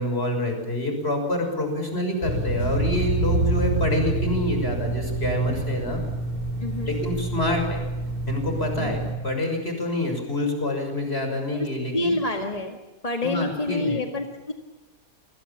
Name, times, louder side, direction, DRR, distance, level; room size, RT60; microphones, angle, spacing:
voice 1, 0.0-6.0 6.8-7.8 8.3-12.1 13.2-14.0, left 1 dB, 40° left, 4 dB, 6.7 m, -27 dB
sound 1, 2.2-9.1, right 2 dB, 75° right, 5.6 m, -27 dB
voice 2, 6.6-7.0 8.8-9.0 11.5-11.7 11.9-12.8 13.0-14.5, left 2 dB, 25° left, 3 dB, 2.0 m, -27 dB
29.0 x 21.5 x 7.3 m, 1.1 s
omnidirectional pair, 1.5 m